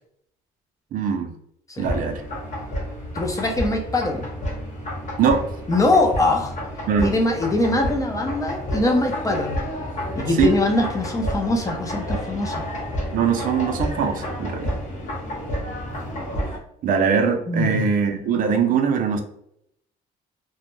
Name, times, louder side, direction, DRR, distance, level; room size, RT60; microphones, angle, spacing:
voice 1, 0.9-1.3 1.8-2.2 5.2-5.5 6.9-7.1 10.3-10.6 13.1-14.7 16.8-19.2, right 6 dB, 55° right, 5 dB, 0.4 m, -21 dB
sound 1, 1.8-16.6, equal, 45° left, 0.9 m, -30 dB
voice 2, 3.1-4.3 5.7-6.6 7.0-9.6 10.1-12.6 17.5-17.9, left 2 dB, 20° left, 2 dB, 0.5 m, -22 dB
2.1 x 2.1 x 3.0 m, 0.74 s
cardioid pair, 110°, 17 cm